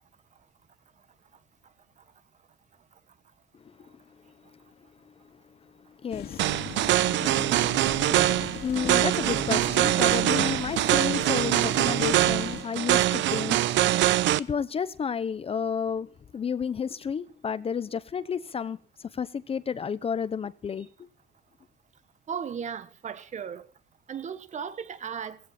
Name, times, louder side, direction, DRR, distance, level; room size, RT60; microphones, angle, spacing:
voice 1, 6.0-6.5 8.6-13.6 14.4-20.9, left 6 dB, 30° left, 0.7 m, -31 dB
sound 1, 6.1-12.6, left 8 dB, 55° left, 2.5 m, -39 dB
sound 2, 6.4-14.4, right 14 dB, 70° right, 0.8 m, -23 dB
voice 2, 22.3-23.7 24.1-25.4, right 7 dB, 40° right, 1.4 m, -36 dB
17.5 x 16.5 x 4.2 m
cardioid pair, 140°, 20 cm